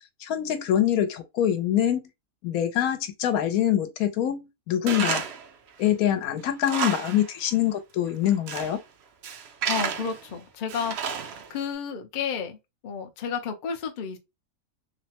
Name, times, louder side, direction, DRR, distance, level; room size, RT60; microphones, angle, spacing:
voice 1, 0.2-2.0 2.4-5.2 5.8-8.8, left 11 dB, 80° left, 1.1 m, -24 dB
Tools, 4.9-5.5 5.9-6.0 6.5-7.3 7.5-7.6 8.2-8.8 9.2-10.2 10.7-11.6, right 7 dB, 65° right, 0.6 m, -31 dB
voice 2, 9.6-12.6 12.8-14.2, left 6 dB, 55° left, 0.5 m, -32 dB
3.1 x 2.1 x 2.7 m
omnidirectional pair, 1.5 m